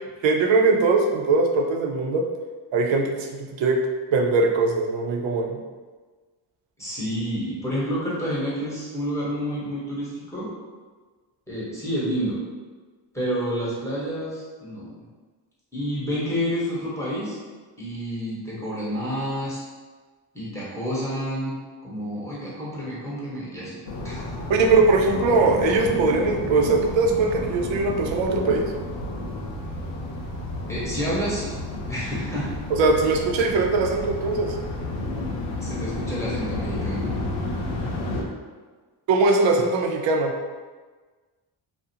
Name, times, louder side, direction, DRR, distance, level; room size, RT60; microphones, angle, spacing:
voice 1, 0.2-2.2 2.7-3.8 4.1-5.6 24.5-28.7 32.7-34.5 39.1-40.3, right 3 dB, 70° right, 2 dB, 0.5 m, -21 dB
voice 2, 6.8-10.5 11.5-12.4 13.1-14.9 15.7-17.4 17.8-19.6 20.3-21.6 21.8-23.8 24.0-24.2 30.7-31.5 31.9-32.5 35.6-37.1, equal, 5° left, -8 dB, 0.9 m, -29 dB
sound 1, 23.9-38.2, left 2 dB, 85° left, 0.7 m, -31 dB
2.4 x 2.0 x 2.7 m, 1.4 s
cardioid pair, 95°, 48 cm